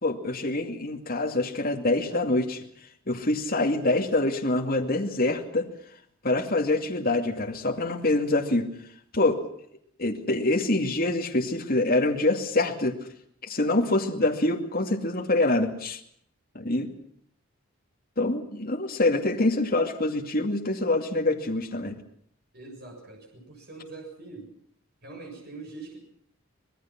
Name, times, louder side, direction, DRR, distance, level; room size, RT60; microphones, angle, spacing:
voice 1, 0.0-2.6 3.1-5.7 6.2-8.7 9.1-9.4 10.0-13.0 13.4-16.0 16.5-16.9 18.2-22.0, left 2 dB, 40° left, 2 dB, 2.4 m, -25 dB
voice 2, 22.5-24.5 25.0-26.1, right 3 dB, 45° right, 1 dB, 7.0 m, -43 dB
26.0 x 20.0 x 6.0 m, 0.67 s
head